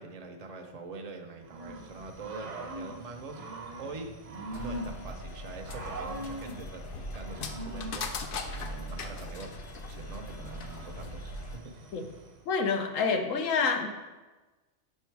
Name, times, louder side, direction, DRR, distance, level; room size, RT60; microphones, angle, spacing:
voice 1, 0.0-4.1 4.5-9.5 9.9-12.0, right 3 dB, 40° right, 3 dB, 0.6 m, -44 dB
Growling / Cricket, 1.5-12.4, right 2 dB, 70° right, 1.2 m, -43 dB
sound 1, 4.5-11.6, left 2 dB, 55° left, 0.6 m, -39 dB
voice 2, 12.5-13.9, left 5 dB, 80° left, 5 dB, 1.1 m, -27 dB
5.5 x 5.0 x 4.6 m, 1.2 s
omnidirectional pair, 1.3 m